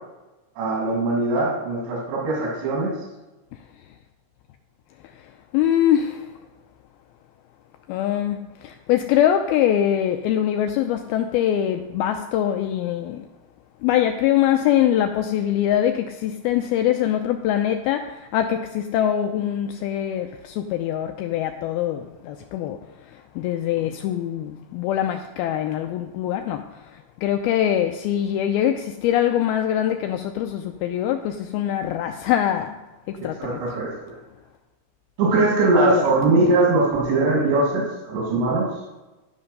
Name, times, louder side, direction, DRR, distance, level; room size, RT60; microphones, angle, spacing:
voice 1, 0.6-2.9 33.4-34.1 35.2-38.7, right 2 dB, 85° right, 4.2 m, -21 dB
voice 2, 5.5-6.3 7.9-13.3 13.8-32.8 33.1-33.6 35.9-36.0, left 11 dB, 85° left, 2.2 m, -23 dB
12.5 x 5.7 x 5.3 m
omnidirectional pair, 4.8 m